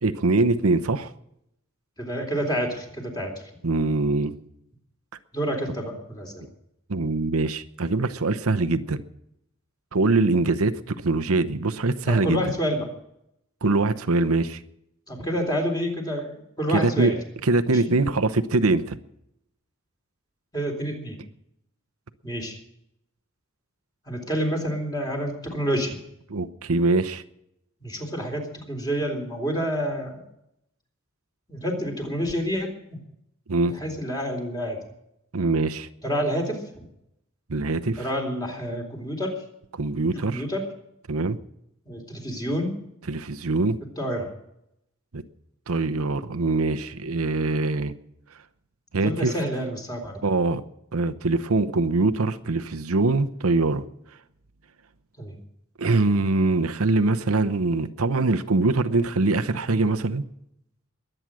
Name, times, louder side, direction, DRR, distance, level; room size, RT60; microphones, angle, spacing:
voice 1, 0.0-1.1 3.6-4.3 6.9-9.0 9.9-12.4 13.6-14.6 16.7-17.1 17.4-19.0 26.3-27.2 33.5-33.7 35.3-35.9 37.5-38.0 39.7-40.4 41.1-41.4 43.1-43.8 45.1-45.2 45.7-47.9 48.9-49.3 50.2-50.6 50.9-53.8 55.8-60.2, right 3 dB, 85° right, 10 dB, 0.8 m, -23 dB
voice 2, 2.0-3.3 5.3-6.5 12.0-12.9 15.1-17.2 17.6-17.9 20.5-21.2 22.2-22.6 24.1-26.0 27.8-30.2 31.5-33.0 33.6-34.8 36.0-36.8 38.0-39.3 40.2-40.6 41.8-42.7 44.0-44.3 48.9-50.3 55.2-55.4, equal, 20° left, 2 dB, 3.6 m, -28 dB
22.0 x 9.0 x 6.2 m, 0.80 s
head